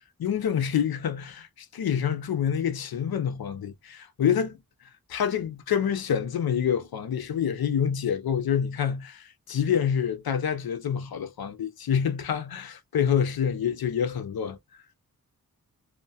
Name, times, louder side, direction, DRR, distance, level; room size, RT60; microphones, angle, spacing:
voice 1, 0.2-4.6 5.1-14.6, left 8 dB, 90° left, 0.5 m, -27 dB
2.8 x 2.1 x 2.7 m
wide cardioid pair, 90°, 35 cm